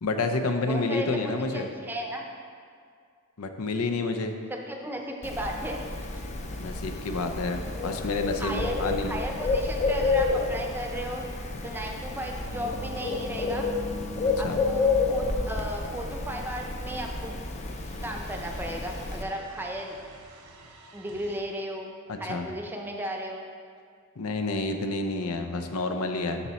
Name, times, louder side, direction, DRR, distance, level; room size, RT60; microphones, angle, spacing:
voice 1, 0.0-1.7 3.4-4.3 6.5-9.1 14.4-14.6 22.1-22.5 24.2-26.4, left 3 dB, 80° left, 6 dB, 0.6 m, -29 dB
voice 2, 0.6-2.3 4.5-5.8 8.4-8.8 9.0-11.3 11.6-13.7 14.4-17.3 18.0-19.9 20.9-21.9 22.2-23.4, equal, 10° right, 1 dB, 0.6 m, -35 dB
Bird, 5.2-19.2, left 3 dB, 30° left, 0.6 m, -30 dB
sound 1, 16.1-21.4, right 2 dB, 80° right, 1.0 m, -50 dB
12.0 x 4.2 x 4.1 m, 2.1 s
head